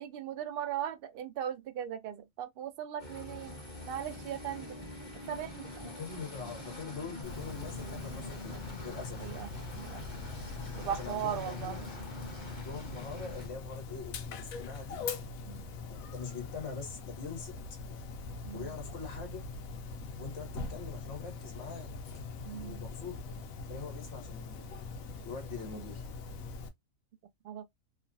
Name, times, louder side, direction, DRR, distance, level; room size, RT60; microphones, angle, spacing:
voice 1, 0.0-3.5 3.9-4.8 5.3-5.9 9.2-9.5 9.8-10.0 10.7-11.9 15.5-15.7 18.4-18.7 22.4-22.9 27.4-27.7, right 10 dB, 65° right, 0.5 m, -38 dB
sound 1, 3.0-13.5, left 1 dB, 20° left, 1.1 m, -45 dB
voice 2, 5.8-9.3 10.9-11.8 12.5-15.0 15.9-17.5 18.5-19.4 20.2-21.9 22.6-23.2 23.7-24.7 25.2-26.0, left 5 dB, 60° left, 1.4 m, -43 dB
Dog, 7.2-26.7, left 4 dB, 80° left, 1.0 m, -42 dB
3.1 x 2.1 x 2.5 m
omnidirectional pair, 1.4 m